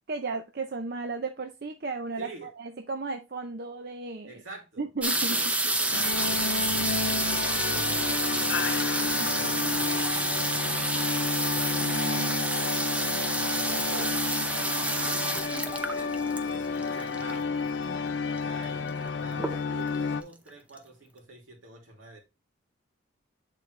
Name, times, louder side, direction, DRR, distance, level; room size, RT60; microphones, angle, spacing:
voice 1, 0.1-4.4 4.8-5.4 9.2-9.3 11.8-12.4 13.7-14.1, right 3 dB, 50° right, 0.6 m, -35 dB
voice 2, 2.2-2.5 4.2-8.8 9.1-12.3 13.3-14.2 14.7-16.2 16.5-17.6 18.4-22.2, right 2 dB, 85° right, 2.5 m, -47 dB
sound 1, 5.0-17.6 18.4-18.5 18.7-19.1 19.4-20.0 20.5-20.6 20.8-20.9, right 2 dB, 5° right, 0.5 m, -29 dB
sound 2, 5.9-20.2, left 5 dB, 65° left, 0.6 m, -31 dB
8.0 x 4.0 x 3.2 m
head